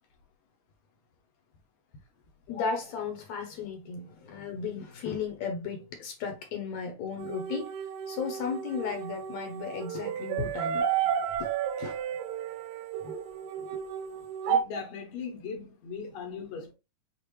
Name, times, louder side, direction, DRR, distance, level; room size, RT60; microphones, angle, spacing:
voice 1, 2.5-7.7 8.1-10.8 11.4-11.5 11.8-12.0 13.0-13.1 13.6-13.7, left 5 dB, 70° left, 1.9 m, -35 dB
sound 1, 7.2-14.6, right 8 dB, 85° right, 2.2 m, -32 dB
voice 2, 14.5-16.7, left 4 dB, 85° left, 2.9 m, -37 dB
6.5 x 2.5 x 3.0 m
omnidirectional pair, 3.7 m